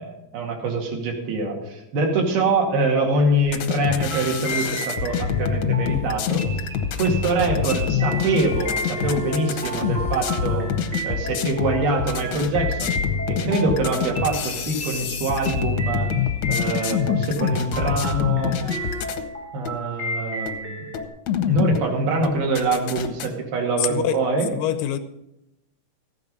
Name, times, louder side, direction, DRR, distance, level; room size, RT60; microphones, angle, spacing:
voice 1, 0.0-6.4 7.0-10.7 11.0-12.9 13.3-16.1 16.5-18.6 19.5-20.9 21.5-24.5, right 2 dB, 75° right, 1 dB, 4.1 m, -24 dB
sound 1, 3.5-19.3 19.6-19.8 20.5-20.6 20.9-21.9 22.2-23.3, left 8 dB, 70° left, 1.7 m, -26 dB
sound 2, 3.9-21.0, right 1 dB, 10° left, 0.5 m, -34 dB
sound 3, 5.1-19.0, right 2 dB, 40° right, 1.6 m, -39 dB
voice 2, 23.8-24.2 24.5-25.0, left 11 dB, 90° left, 9 dB, 3.0 m, -24 dB
15.0 x 9.6 x 5.4 m, 0.88 s
omnidirectional pair, 4.4 m